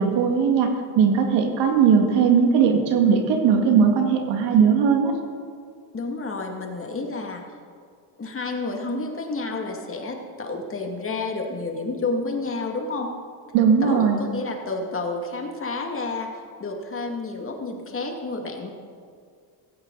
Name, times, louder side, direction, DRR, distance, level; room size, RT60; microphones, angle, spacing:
voice 1, 0.0-5.1 13.5-14.2, right 6 dB, 85° right, 3 dB, 2.3 m, -19 dB
voice 2, 5.9-7.4 8.2-13.1 13.8-16.3 16.6-18.7, left 3 dB, 30° left, 2 dB, 2.5 m, -30 dB
16.5 x 15.5 x 4.2 m, 2.2 s
cardioid pair, 105°, 42 cm